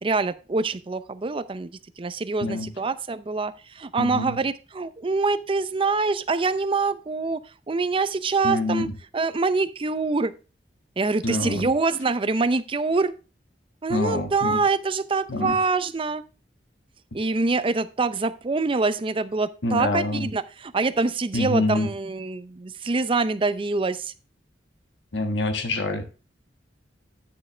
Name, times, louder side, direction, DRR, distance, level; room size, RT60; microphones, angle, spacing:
voice 1, 0.0-7.4 7.7-8.9 9.1-10.3 11.0-13.1 13.8-16.2 17.1-24.1, right 3 dB, 30° right, 13 dB, 0.5 m, -25 dB
voice 2, 4.0-4.4 8.4-8.9 11.2-11.7 13.9-14.6 15.3-15.5 19.6-20.3 21.3-21.9 25.1-26.0, left 2 dB, 85° left, 5 dB, 1.4 m, -26 dB
9.8 x 6.6 x 3.2 m, 0.32 s
head